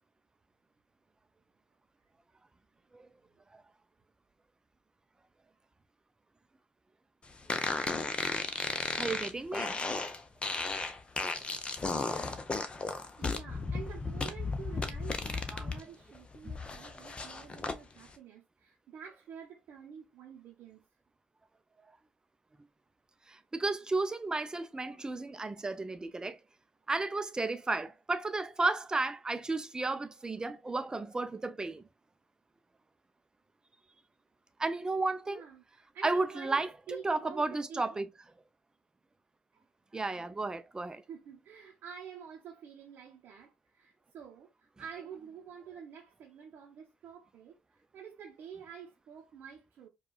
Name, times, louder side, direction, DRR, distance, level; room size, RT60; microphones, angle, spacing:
sound 1, 7.5-15.8 16.1-17.8, left 3 dB, 30° left, 0.8 m, -34 dB
voice 1, 9.0-9.8 15.5-15.7 16.4-16.5 23.3-26.4 26.9-31.8 34.6-35.4 36.0-36.7 37.0-38.1 39.9-41.0, right 3 dB, 20° right, 0.6 m, -33 dB
voice 2, 13.2-20.8 35.2-38.0 39.5-39.6 40.9-49.9, right 7 dB, 60° right, 0.8 m, -49 dB
4.7 x 2.4 x 2.3 m
hypercardioid pair, 55°, 4 cm